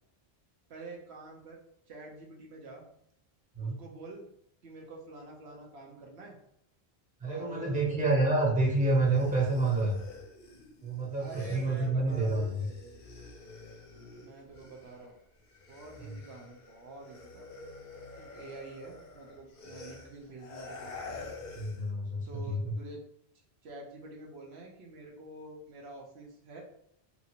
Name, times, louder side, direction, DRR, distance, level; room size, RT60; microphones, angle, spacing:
voice 1, 0.7-1.6 1.9-2.9 3.6-4.3 4.6-6.4 7.2-8.0 11.0-13.0 14.2-15.2 15.7-17.5 18.1-21.2 22.2-23.0 23.6-26.6, right 2 dB, 75° right, -1 dB, 1.0 m, -47 dB
voice 2, 7.2-10.0 10.8-12.6 21.6-22.7, right 2 dB, 10° right, -4 dB, 0.7 m, -28 dB
sound 1, 8.9-15.1 15.4-21.9, left 3 dB, 55° left, 0.8 m, -48 dB
2.9 x 2.5 x 2.8 m, 0.71 s
omnidirectional pair, 1.1 m